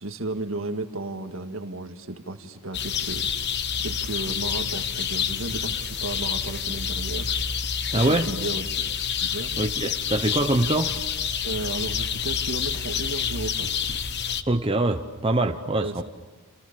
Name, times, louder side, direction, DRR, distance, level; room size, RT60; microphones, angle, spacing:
voice 1, 0.0-3.3 3.8-7.3 7.9-8.9 9.2-9.5 11.4-13.7 15.8-16.0, right 2 dB, 65° right, 6 dB, 1.9 m, -34 dB
sound 1, 2.7-14.4, left 7 dB, 50° left, 1.2 m, -28 dB
voice 2, 7.9-8.3 9.6-10.9 14.5-16.0, right 2 dB, 25° right, 5 dB, 0.9 m, -24 dB
29.5 x 29.0 x 6.9 m, 1.2 s
head